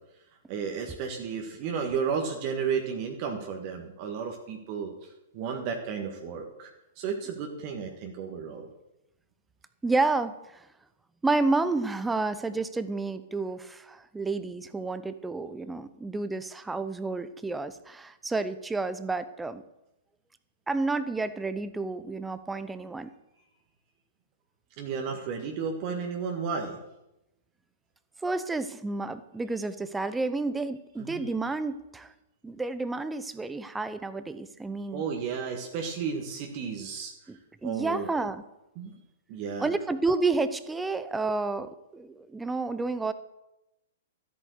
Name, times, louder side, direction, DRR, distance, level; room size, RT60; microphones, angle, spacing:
voice 1, 0.5-5.1 5.3-8.7 24.8-26.8 31.0-31.3 34.9-37.1 37.6-38.1 38.8-38.9 39.3-39.7, right 6 dB, 40° right, 2 dB, 1.7 m, -33 dB
voice 2, 9.8-10.6 11.2-19.6 20.7-23.1 28.2-32.1 32.4-35.0 37.3-38.4 39.6-43.1, right 3 dB, 10° right, 13 dB, 0.8 m, -30 dB
14.0 x 8.5 x 6.6 m, 0.90 s
figure-of-eight pair, 110°, 0 cm